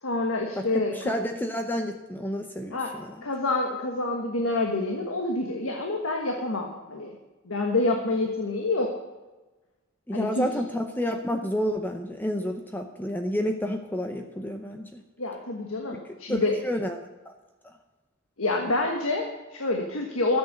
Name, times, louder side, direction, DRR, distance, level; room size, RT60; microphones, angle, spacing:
voice 1, 0.0-0.9 2.7-2.9 3.2-7.1 7.4-8.9 10.1-10.5 15.2-16.5 18.4-20.4, left 2 dB, 90° left, 2 dB, 1.5 m, -27 dB
voice 2, 0.6-3.2 10.1-15.0 16.3-17.0 17.3-17.4 17.6-17.7, equal, 10° left, 5 dB, 0.7 m, -30 dB
13.0 x 8.0 x 6.7 m, 1.1 s
head